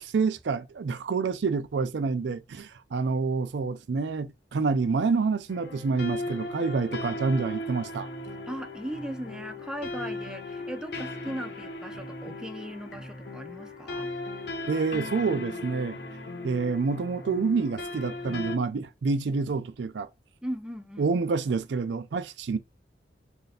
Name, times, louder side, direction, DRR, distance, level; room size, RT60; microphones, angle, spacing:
voice 1, 0.0-8.1 14.7-16.0 16.4-20.1 21.0-22.6, right 4 dB, 80° right, 0.4 m, -28 dB
sound 1, 5.5-18.6, left 2 dB, 65° left, 0.8 m, -37 dB
voice 2, 8.5-14.1 20.4-21.1, equal, 5° right, 0.4 m, -38 dB
3.3 x 2.5 x 4.1 m
head